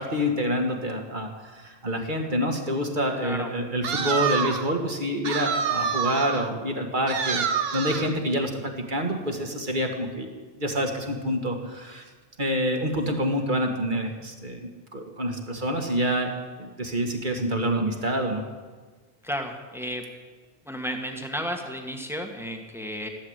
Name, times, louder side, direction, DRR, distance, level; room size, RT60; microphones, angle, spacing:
voice 1, 0.0-10.3 10.6-12.0 12.4-18.4, equal, 40° right, 3 dB, 2.1 m, -27 dB
voice 2, 3.2-3.5 19.2-20.0 20.6-23.1, equal, ahead, 3 dB, 1.7 m, -33 dB
sound 1, 3.8-4.7 5.2-6.5 7.1-8.2, right 6 dB, 60° right, 1.1 m, -27 dB
14.5 x 12.0 x 8.1 m, 1.4 s
omnidirectional pair, 1.2 m